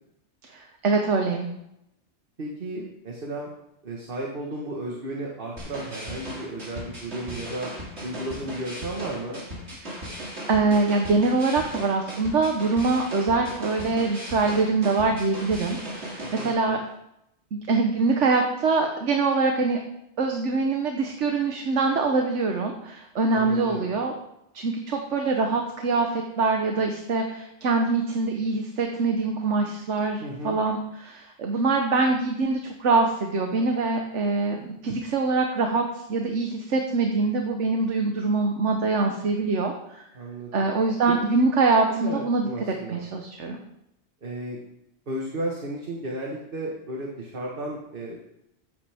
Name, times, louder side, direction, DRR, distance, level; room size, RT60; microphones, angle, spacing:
voice 1, 0.5-1.5 9.8-10.0 10.5-16.8 17.5-19.8 20.2-24.1 24.5-35.8 36.1-40.0 40.5-42.5 42.9-43.6, right 3 dB, 90° right, 3 dB, 1.4 m, -24 dB
voice 2, 2.4-3.5 3.8-7.7 8.0-9.5 16.2-16.8 23.3-23.9 30.2-30.6 40.1-40.7 41.1-41.3 41.9-43.0 44.2-44.6 45.1-48.3, right 1 dB, 50° right, -1 dB, 1.7 m, -34 dB
sound 1, 5.6-16.5, equal, 70° right, 3.1 m, -37 dB
14.5 x 8.6 x 3.6 m, 0.81 s
omnidirectional pair, 1.2 m